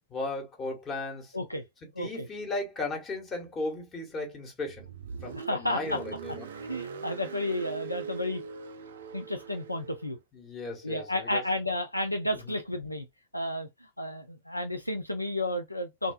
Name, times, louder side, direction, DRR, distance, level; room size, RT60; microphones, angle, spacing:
voice 1, 0.1-1.4 2.0-4.9 5.2-6.5 10.3-11.4 12.3-12.6, left 2 dB, 25° left, 1.1 m, -36 dB
voice 2, 2.0-2.3 5.3-6.0 6.7-8.4 9.1-10.2 10.8-13.0 13.3-13.7 14.0-16.1, left 1 dB, 90° left, 0.3 m, -32 dB
Car, 4.7-10.1, right 7 dB, 65° right, 0.3 m, -42 dB
2.6 x 2.2 x 2.2 m
figure-of-eight pair, 90°, 0 cm